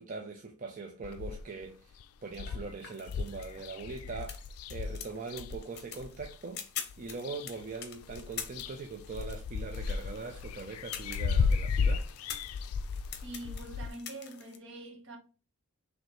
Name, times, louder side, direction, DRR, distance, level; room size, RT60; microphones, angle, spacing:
voice 1, 0.0-6.6 7.0-12.1, right 4 dB, 35° right, 0.4 m, -42 dB
sound 1, 1.0-1.6 2.0-2.1 2.3-6.4 6.9-7.7 8.0-13.9, left 5 dB, 80° left, 0.3 m, -34 dB
sound 2, 2.3-14.6, left 8 dB, 50° left, 0.7 m, -46 dB
voice 2, 13.2-15.2, right 2 dB, 55° right, 1.2 m, -44 dB
4.7 x 3.1 x 3.0 m
head